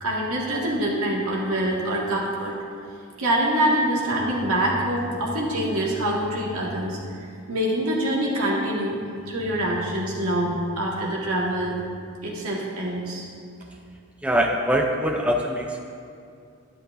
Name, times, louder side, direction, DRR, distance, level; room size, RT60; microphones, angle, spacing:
voice 1, 0.0-2.5 3.2-7.0 7.5-9.0 9.3-11.8 12.2-13.3, right 1 dB, 85° right, -3 dB, 1.9 m, -25 dB
voice 2, 14.2-15.8, equal, 5° right, 1 dB, 0.4 m, -23 dB
11.0 x 10.0 x 2.6 m, 2.4 s
head